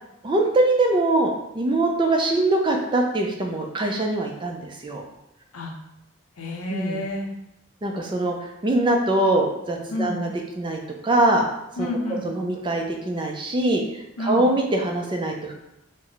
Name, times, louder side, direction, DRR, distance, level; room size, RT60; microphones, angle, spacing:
voice 1, 0.2-5.0 6.7-7.0 7.8-8.3 8.6-10.3 10.6-11.5 11.8-11.9 12.2-13.8 14.2-15.5, right 2 dB, 20° right, 2 dB, 0.3 m, -22 dB
voice 2, 6.4-7.3 9.9-10.2 11.8-12.3 14.2-14.4, left 1 dB, 85° left, 2 dB, 0.6 m, -29 dB
3.2 x 2.0 x 3.8 m, 0.88 s
head